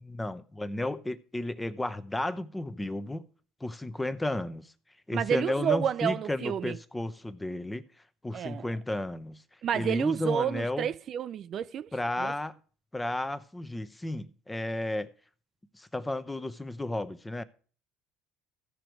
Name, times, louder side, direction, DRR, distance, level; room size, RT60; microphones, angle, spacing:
voice 1, 0.1-3.3 3.6-4.7 5.1-7.8 8.2-9.4 9.7-10.9 11.9-12.5 12.9-15.1 15.7-17.4, left 1 dB, 10° left, 0.7 m, -33 dB
voice 2, 5.1-6.8 8.3-8.7 9.6-11.9 12.2-12.3, right 8 dB, 50° right, 0.4 m, -30 dB
15.0 x 5.1 x 4.6 m
supercardioid pair, 90°, 0 cm